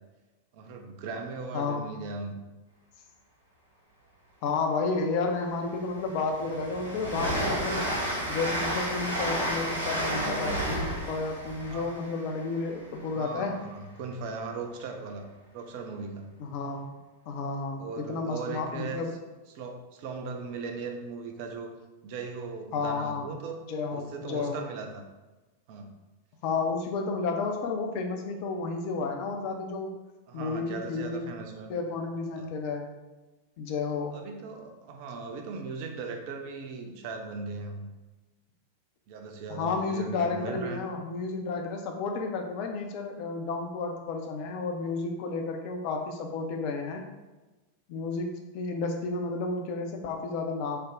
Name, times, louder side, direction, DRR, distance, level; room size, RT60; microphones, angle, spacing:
voice 1, 0.5-2.4 11.7-11.9 13.1-16.3 17.8-19.1 19.5-21.7 22.0-23.7 23.9-25.0 25.7-25.9 30.3-31.7 32.4-32.5 34.1-37.9 39.1-40.8, right 4 dB, 45° right, 4 dB, 0.4 m, -38 dB
voice 2, 1.5-1.9 4.4-7.8 8.3-13.5 16.4-16.9 17.3-19.1 22.7-23.2 23.7-24.6 26.4-29.9 30.3-31.3 31.7-32.9 33.6-34.2 39.5-47.0 47.9-50.8, left 4 dB, 45° left, 3 dB, 0.5 m, -32 dB
Train, 5.0-5.1 5.5-13.3, equal, 85° right, 0.8 m, -32 dB
3.2 x 2.1 x 3.7 m, 1.1 s
figure-of-eight pair, 90°, 0 cm